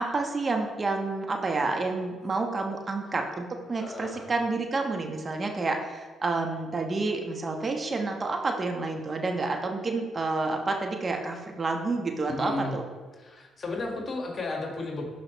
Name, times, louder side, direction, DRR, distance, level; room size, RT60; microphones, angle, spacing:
voice 1, 0.0-12.8, right 3 dB, 40° right, 3 dB, 1.1 m, -29 dB
voice 2, 3.8-4.3 12.3-12.8 13.2-15.1, left 2 dB, 45° left, 1 dB, 1.9 m, -34 dB
11.5 x 4.9 x 3.1 m, 1.4 s
hypercardioid pair, 50°, 0 cm